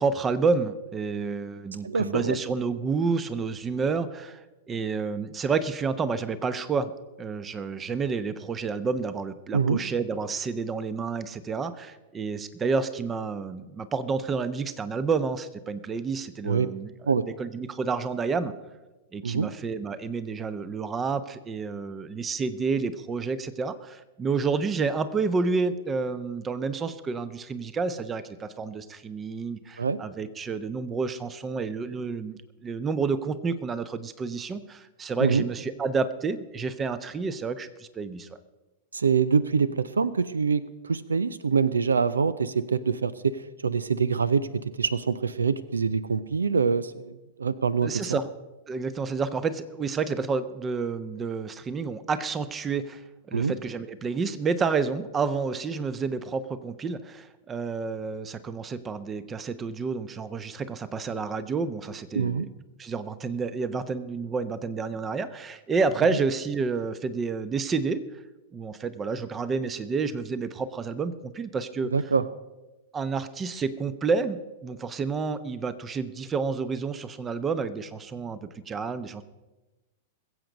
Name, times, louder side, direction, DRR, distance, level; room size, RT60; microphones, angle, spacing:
voice 1, 0.0-4.4 4.7-6.9 7.2-16.9 17.2-18.5 19.1-38.3 47.8-48.3 48.7-53.0 53.3-62.5 62.8-68.0 68.5-71.9 72.9-79.2, right 4 dB, 20° right, 14 dB, 0.9 m, -29 dB
voice 2, 1.8-2.4 9.5-9.8 16.4-16.7 17.1-17.3 19.2-19.5 29.8-30.0 35.2-35.4 38.9-48.2 53.3-53.5 62.2-62.5 71.9-72.2, right 5 dB, 80° right, 18 dB, 0.5 m, -25 dB
21.5 x 7.9 x 5.2 m, 1.1 s
figure-of-eight pair, 100°, 0 cm